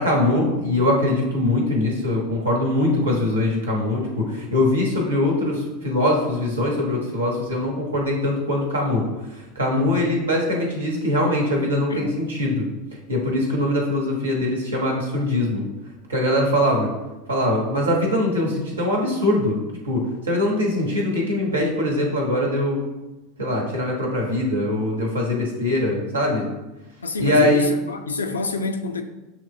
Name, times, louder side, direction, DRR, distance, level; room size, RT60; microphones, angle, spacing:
voice 1, 0.0-9.0 9.5-12.7 13.1-15.6 16.1-16.9 17.3-22.8 23.4-26.5 27.2-27.7, left 1 dB, 90° right, -1 dB, 1.1 m, -22 dB
voice 2, 9.7-10.0 11.9-12.0 27.0-29.0, left 4 dB, 90° left, 6 dB, 0.4 m, -26 dB
6.6 x 3.0 x 2.6 m, 1.0 s
hypercardioid pair, 85°, 0 cm